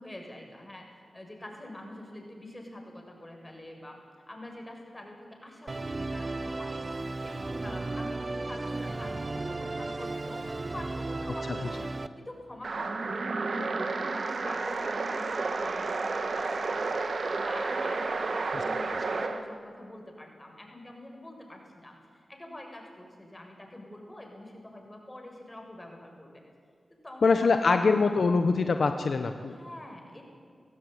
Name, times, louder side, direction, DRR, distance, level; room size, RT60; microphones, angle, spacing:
voice 1, 0.0-4.0 4.3-6.9 7.2-17.0 17.3-26.4 27.0-27.8 29.4-30.3, left 1 dB, 25° left, 2 dB, 7.4 m, -46 dB
Musical instrument, 5.7-12.1, right 2 dB, 45° right, 1.2 m, -35 dB
sound 1, 12.6-19.4, right 3 dB, 70° right, 2.2 m, -31 dB
voice 2, 27.2-29.6, left 4 dB, 70° left, 7 dB, 1.2 m, -23 dB
26.5 x 16.0 x 9.6 m, 2.2 s
cardioid pair, 40°, 0 cm